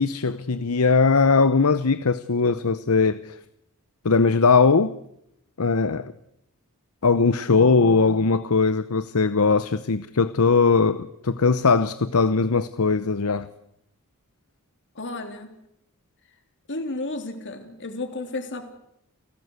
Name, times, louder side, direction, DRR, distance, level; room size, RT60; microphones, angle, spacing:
voice 1, 0.0-3.4 4.0-5.0 5.6-6.1 7.0-13.5, left 4 dB, 70° left, 0.9 m, -20 dB
voice 2, 15.0-15.5 16.7-18.6, left 2 dB, 55° left, 3.7 m, -32 dB
29.5 x 18.0 x 8.2 m
head